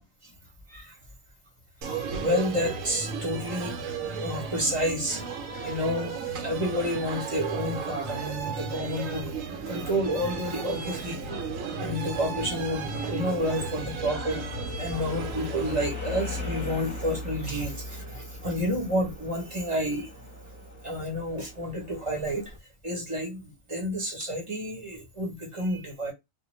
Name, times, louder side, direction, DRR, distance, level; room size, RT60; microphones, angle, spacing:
sound 1, 1.8-15.9, right 5 dB, 75° right, 1.0 m, -34 dB
voice 1, 1.9-3.8 4.2-5.2 5.6-6.1 6.4-9.3 9.7-11.2 11.8-14.4 14.8-20.1 20.8-22.5 22.8-26.1, equal, 30° right, 0.7 m, -30 dB
sound 2, 9.6-22.6, left 3 dB, 15° left, 0.9 m, -40 dB
2.4 x 2.1 x 3.0 m
omnidirectional pair, 1.4 m